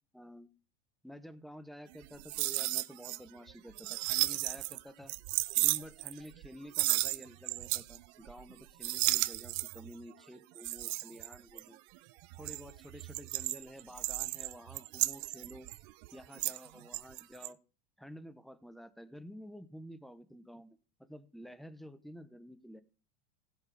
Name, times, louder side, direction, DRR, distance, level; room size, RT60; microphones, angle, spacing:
voice 1, 0.1-0.5 1.0-5.1 5.5-11.8 12.4-15.7 16.1-17.6 18.0-22.8, equal, ahead, 13 dB, 0.9 m, -50 dB
sound 1, 2.1-3.2 3.5-4.8 5.1-6.5 6.7-8.0 8.2-8.5 8.8-9.9 10.6-11.8 12.2-16.7 16.9-17.5, right 22 dB, 55° right, 0.6 m, -34 dB
16.0 x 7.6 x 3.4 m, 0.36 s
supercardioid pair, 115°, 29 cm